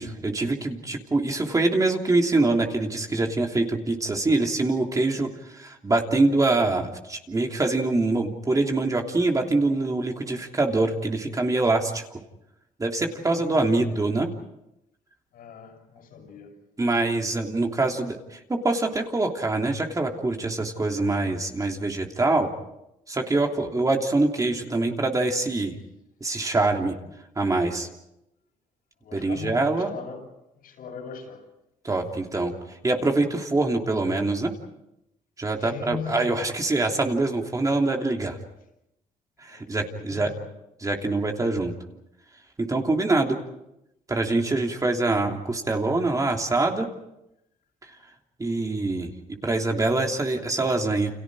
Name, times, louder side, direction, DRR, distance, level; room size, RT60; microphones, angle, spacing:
voice 1, 0.0-12.0 12.8-14.3 16.8-22.5 23.1-25.8 26.2-26.9 27.4-27.9 29.1-29.9 31.8-32.5 32.8-34.5 35.4-38.4 39.4-40.3 40.8-41.7 42.6-43.4 44.1-46.9 47.8-47.9 48.4-51.2, right 2 dB, 25° right, 3.2 m, -24 dB
voice 2, 13.2-14.1 15.3-16.6 29.0-30.3 30.6-31.5 35.6-36.4 39.5-40.4, left 6 dB, 80° left, 7.9 m, -39 dB
30.0 x 28.0 x 4.9 m
cardioid pair, 95°, 15 cm